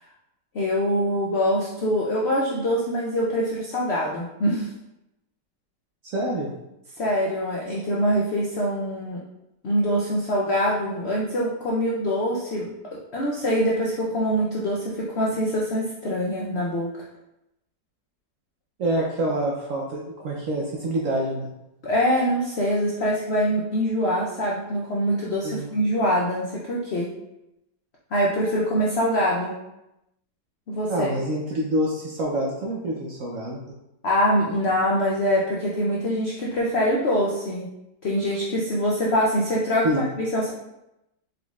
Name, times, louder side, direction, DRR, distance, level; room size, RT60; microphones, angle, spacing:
voice 1, 0.5-4.7 7.0-9.2 9.6-12.7 13.1-16.9 21.8-27.1 28.1-29.5 30.7-31.1 34.0-37.7 38.0-40.5, equal, 75° left, -3 dB, 0.6 m, -24 dB
voice 2, 6.0-6.5 18.8-21.5 25.4-25.7 30.9-33.6 39.8-40.1, right 1 dB, 65° right, -2 dB, 0.8 m, -26 dB
4.7 x 3.9 x 2.3 m, 0.89 s
omnidirectional pair, 1.9 m